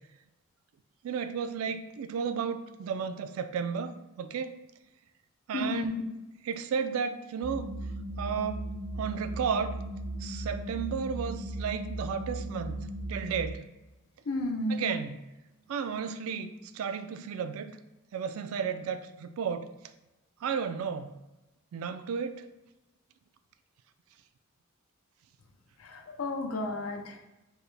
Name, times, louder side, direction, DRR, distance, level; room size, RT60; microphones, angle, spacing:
voice 1, 1.0-3.9 4.2-4.5 5.5-6.0 6.5-7.7 8.2-8.7 9.0-9.8 10.2-13.6 14.7-15.2 15.7-17.8 18.1-19.7 20.4-21.2 21.7-22.5, right 6 dB, 75° right, 9 dB, 0.3 m, -33 dB
voice 2, 5.5-6.0 14.2-15.0 25.8-27.2, left 2 dB, 80° left, 3 dB, 0.5 m, -32 dB
sound 1, 7.4-13.5, right 1 dB, 10° right, 0.5 m, -37 dB
4.6 x 2.1 x 3.2 m, 0.98 s
head